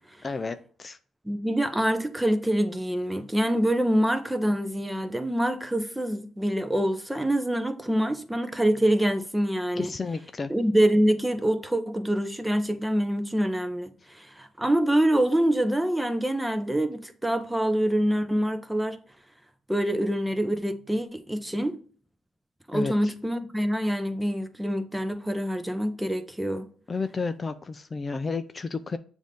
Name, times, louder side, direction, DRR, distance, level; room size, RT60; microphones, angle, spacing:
voice 1, 0.2-1.0 9.7-10.5 22.7-23.1 26.9-29.0, left 4 dB, 30° left, 0.4 m, -32 dB
voice 2, 1.2-9.9 10.5-19.0 19.7-21.8 22.7-26.7, right 1 dB, 5° right, 0.7 m, -25 dB
7.2 x 2.6 x 5.1 m
cardioid pair, 90°, 0 cm